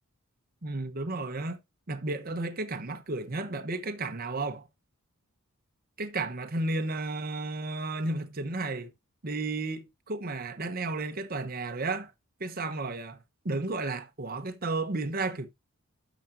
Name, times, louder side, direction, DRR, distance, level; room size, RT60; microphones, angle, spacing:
voice 1, 0.6-1.6 1.9-4.7 6.0-8.9 9.2-12.1 12.4-13.2 13.4-15.5, right 2 dB, 40° right, 0.9 m, -33 dB
12.0 x 5.0 x 2.6 m
head